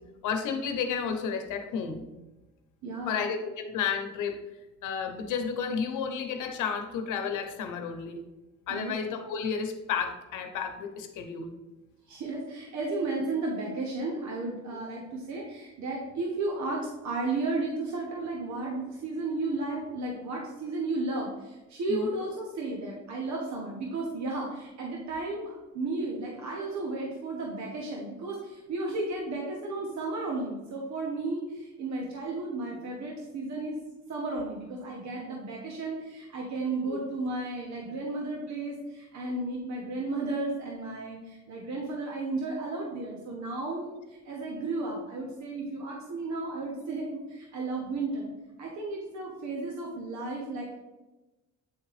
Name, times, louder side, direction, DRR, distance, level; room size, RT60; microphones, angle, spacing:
voice 1, 0.2-2.0 3.1-4.4 4.8-8.2 8.7-11.5 21.9-22.1 36.9-37.0, left 6 dB, 85° left, 6 dB, 0.9 m, -32 dB
voice 2, 2.8-3.1 8.7-8.9 12.1-33.8 34.1-48.3 48.6-50.8, right 2 dB, 70° right, -1 dB, 1.2 m, -33 dB
8.5 x 3.7 x 3.3 m, 1.1 s
cardioid pair, 90°, 30 cm